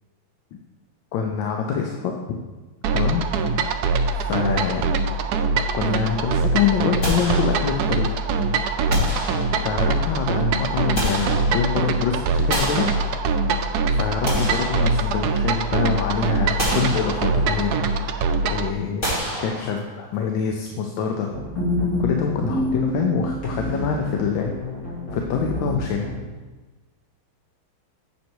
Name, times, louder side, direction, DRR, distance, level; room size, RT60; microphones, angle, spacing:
voice 1, 1.1-2.4 2.9-3.2 4.1-4.9 5.7-8.1 9.6-12.9 13.9-17.8 18.4-19.1 19.4-21.3 22.0-24.5 25.1-26.1, left 6 dB, 70° left, 3 dB, 1.4 m, -25 dB
sound 1, 2.8-18.7, right 4 dB, 80° right, 0.8 m, -23 dB
sound 2, 7.0-8.1 8.9-9.9 10.6-11.9 12.5-13.6 14.0-15.5 15.9-16.0 16.6-17.6 19.0-20.1, equal, 35° left, 2.8 m, -29 dB
sound 3, 21.2-26.2, left 1 dB, 55° left, 3.2 m, -27 dB
8.3 x 6.3 x 4.5 m, 1.2 s
omnidirectional pair, 2.3 m